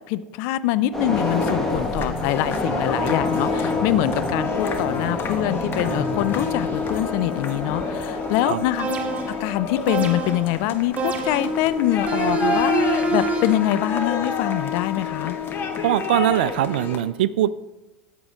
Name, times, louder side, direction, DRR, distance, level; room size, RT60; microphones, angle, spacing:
voice 1, 0.1-8.9 9.4-15.4, left 13 dB, 55° left, 15 dB, 0.4 m, -24 dB
sound 1, 0.9-15.5 15.8-16.0, equal, 5° left, 1.3 m, -31 dB
sound 2, 1.1-17.0, left 6 dB, 40° left, 1.1 m, -28 dB
sound 3, 8.8-9.4 9.9-10.5 11.0-11.6 12.1-13.7, right 5 dB, 25° right, 1.5 m, -26 dB
voice 2, 15.8-17.6, right 12 dB, 65° right, 18 dB, 0.3 m, -21 dB
13.5 x 8.4 x 2.4 m, 1.1 s
figure-of-eight pair, 75°, 6 cm